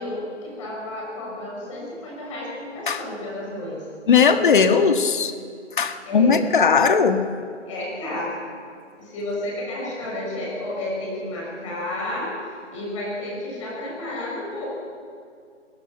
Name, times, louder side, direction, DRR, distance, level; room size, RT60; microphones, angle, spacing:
voice 1, 0.0-3.8 6.1-6.4 7.7-8.4 9.0-14.7, left 1 dB, 25° left, -3 dB, 6.3 m, -31 dB
voice 2, 4.1-5.3 5.8-7.2, left 6 dB, 40° left, 8 dB, 1.6 m, -18 dB
27.5 x 20.0 x 5.8 m, 2.2 s
hypercardioid pair, 165°, 37 cm